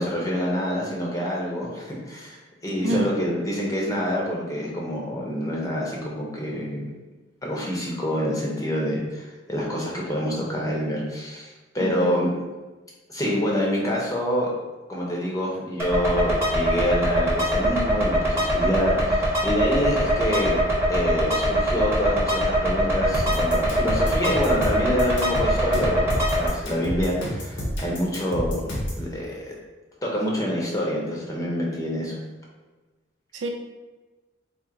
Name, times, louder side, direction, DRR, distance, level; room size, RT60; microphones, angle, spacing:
voice 1, 0.0-2.4 2.6-6.8 7.4-12.3 13.1-14.5 14.9-20.6 20.9-28.5 29.0-29.5 30.0-32.2, equal, 20° left, -4 dB, 0.8 m, -27 dB
voice 2, 2.8-3.1 11.8-12.3 33.3-33.5, right 2 dB, 80° right, 3 dB, 0.5 m, -27 dB
sound 1, 15.8-26.5, equal, 15° right, 1.0 m, -23 dB
sound 2, 23.1-29.0, equal, 70° left, 1.0 m, -29 dB
4.4 x 2.0 x 3.7 m, 1.2 s
head